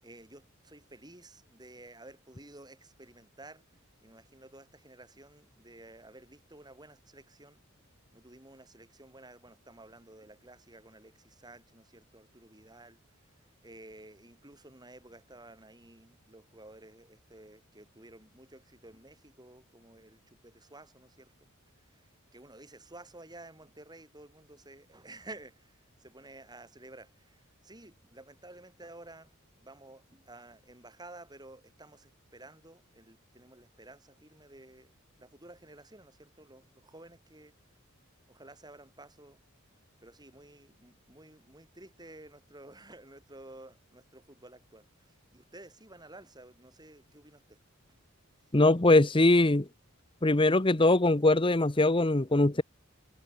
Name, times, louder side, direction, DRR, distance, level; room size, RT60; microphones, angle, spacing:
voice 1, 0.0-7.6 8.1-21.5 21.8-29.3 29.6-37.5 38.3-39.4 40.0-47.6 47.9-48.0 48.5-48.6, right 2 dB, 20° right, 7.3 m, -53 dB
voice 2, 48.5-49.7 50.2-52.6, left 2 dB, 25° left, 0.9 m, -22 dB
head